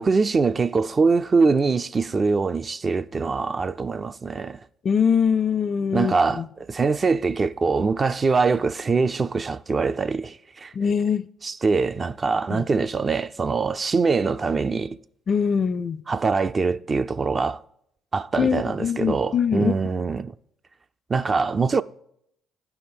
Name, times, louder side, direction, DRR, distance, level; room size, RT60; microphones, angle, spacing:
voice 1, 0.0-4.6 5.9-6.4 6.7-10.7 11.4-15.0 16.1-17.6 18.1-20.3 21.1-21.8, right 4 dB, 35° right, 0.3 m, -23 dB
voice 2, 4.8-6.5 10.7-11.3 12.5-12.7 15.3-16.0 18.4-19.8, left 7 dB, 45° left, 0.4 m, -23 dB
11.0 x 4.8 x 5.2 m
hypercardioid pair, 60°, 0 cm